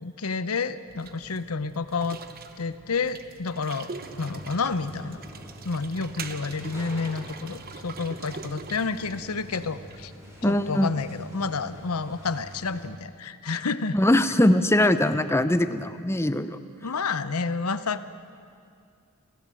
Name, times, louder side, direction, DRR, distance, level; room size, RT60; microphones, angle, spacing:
voice 1, 0.0-2.2 2.6-3.9 4.2-5.2 5.6-10.1 10.4-14.0 14.8-14.9 16.8-18.1, left 4 dB, 80° left, 13 dB, 0.9 m, -30 dB
sound 1, 0.9-10.1, right 5 dB, 45° right, 1.1 m, -43 dB
sound 2, 3.9-12.9, equal, 10° right, 5.4 m, -45 dB
voice 2, 10.4-10.9 13.9-16.6, left 1 dB, 10° left, 11 dB, 0.8 m, -21 dB
29.0 x 16.0 x 7.7 m, 2.4 s
head